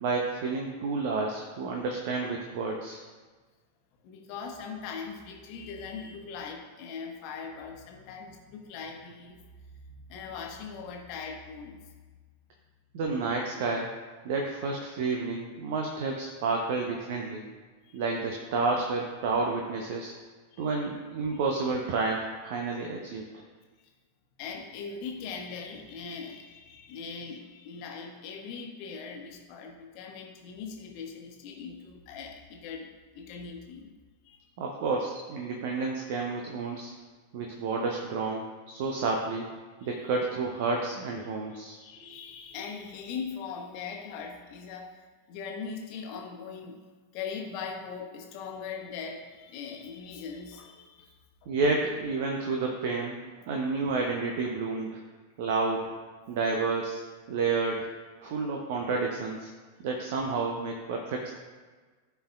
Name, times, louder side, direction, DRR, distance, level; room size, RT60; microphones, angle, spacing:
voice 1, 0.0-3.0 12.9-13.9 14.2-17.4 17.9-20.1 20.6-23.4 34.6-36.9 37.3-39.5 39.8-41.7 51.5-53.2 53.5-55.0 55.4-55.8 56.3-57.0 57.3-57.9 58.2-59.5 59.8-61.3, right 4 dB, 50° right, 1 dB, 0.8 m, -30 dB
voice 2, 4.0-9.4 9.7-11.8 17.8-18.0 20.5-20.7 23.8-23.9 24.4-33.9 34.2-34.5 39.8-40.1 41.7-46.8 47.1-51.1 51.4-51.5 56.5-56.6 57.4-57.5 58.2-58.3, left 5 dB, 45° left, 1 dB, 1.2 m, -40 dB
13.5 x 4.6 x 2.4 m, 1.4 s
figure-of-eight pair, 90°, 0 cm